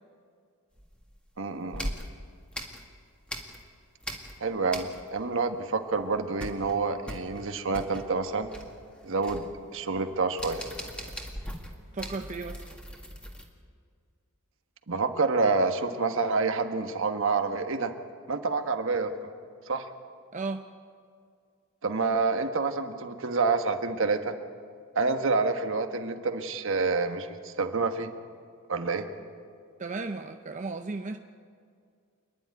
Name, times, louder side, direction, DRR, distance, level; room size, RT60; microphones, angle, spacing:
sound 1, 0.8-1.3 1.7-3.7 4.0-5.3 5.6-5.7 6.0-13.5, equal, 5° left, 1.9 m, -40 dB
voice 1, 1.4-1.9 4.4-8.5 9.0-10.6 14.9-17.9 18.3-19.1 19.7-19.9 21.8-24.3 24.9-28.1 28.7-29.1, right 4 dB, 65° right, 7 dB, 1.4 m, -28 dB
voice 2, 11.9-12.6 20.3-20.6 29.8-31.2, right 3 dB, 35° right, 6 dB, 0.7 m, -34 dB
27.5 x 11.0 x 9.7 m, 2.2 s
head